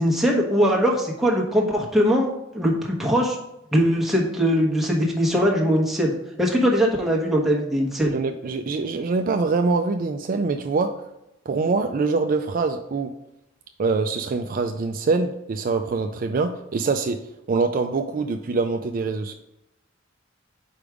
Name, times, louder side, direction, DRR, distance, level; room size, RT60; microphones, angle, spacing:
voice 1, 0.0-3.4 3.7-6.1 6.4-8.1, equal, ahead, -2 dB, 1.1 m, -21 dB
voice 2, 8.1-10.9 11.5-13.1 13.8-17.2 17.5-19.3, right 4 dB, 45° right, 6 dB, 0.4 m, -24 dB
5.2 x 4.7 x 4.9 m, 0.85 s
head